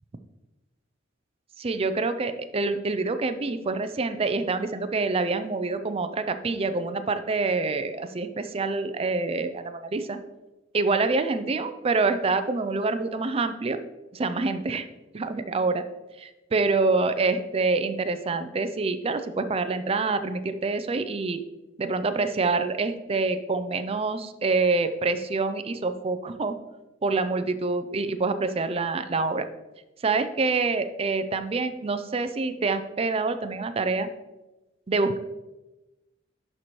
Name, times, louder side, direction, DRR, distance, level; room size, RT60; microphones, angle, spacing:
voice 1, 1.6-10.2 10.7-13.8 14.1-14.9 15.1-15.8 16.2-21.4 21.8-26.6 27.0-29.5 30.0-34.1 34.9-35.2, right 3 dB, 30° right, 9 dB, 0.4 m, -26 dB
11.0 x 4.4 x 3.1 m, 1.0 s
head